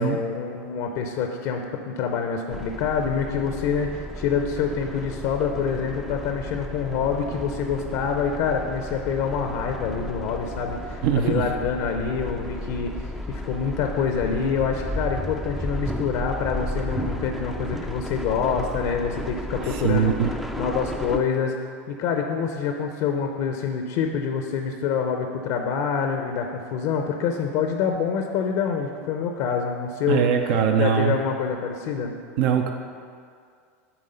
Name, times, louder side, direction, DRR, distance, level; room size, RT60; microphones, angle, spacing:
voice 1, 0.0-21.5 21.9-30.3 30.8-32.2, left 6 dB, 60° left, 4 dB, 0.6 m, -26 dB
sound 1, 2.5-21.2, equal, ahead, 0.4 m, -33 dB
voice 2, 11.0-11.4 19.6-20.3 30.1-31.2 32.4-32.7, right 8 dB, 65° right, 4 dB, 0.6 m, -21 dB
8.8 x 3.6 x 5.5 m, 2.2 s
supercardioid pair, 120°, 8 cm